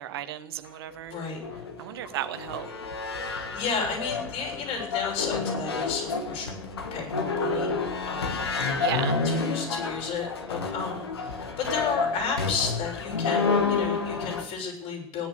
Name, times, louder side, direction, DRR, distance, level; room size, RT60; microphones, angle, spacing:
voice 1, 0.0-1.2 1.8-2.7 8.8-9.2, right 12 dB, 75° right, 12 dB, 0.9 m, -34 dB
sound 1, 0.9-14.4, left 4 dB, 85° left, 1.4 m, -30 dB
voice 2, 1.1-1.4 3.2-6.5 6.9-7.7 8.1-8.9 9.2-15.3, left 5 dB, 65° left, -1 dB, 7.0 m, -33 dB
16.5 x 11.0 x 6.6 m, 0.70 s
figure-of-eight pair, 55°, 13 cm